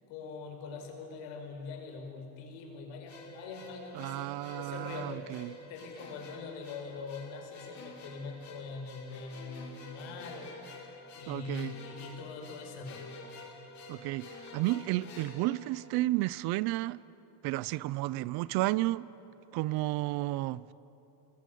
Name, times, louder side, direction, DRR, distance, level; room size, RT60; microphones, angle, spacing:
voice 1, 0.1-10.8 11.1-13.1, left 4 dB, 70° left, 5.2 m, -43 dB
sound 1, 3.1-16.3, left 2 dB, 35° left, 5.2 m, -49 dB
voice 2, 4.0-5.5 11.3-11.7 13.9-17.0 17.4-19.1 19.5-20.6, right 18 dB, 55° right, 0.5 m, -32 dB
28.0 x 22.0 x 9.2 m
cardioid pair, 170°, 45 cm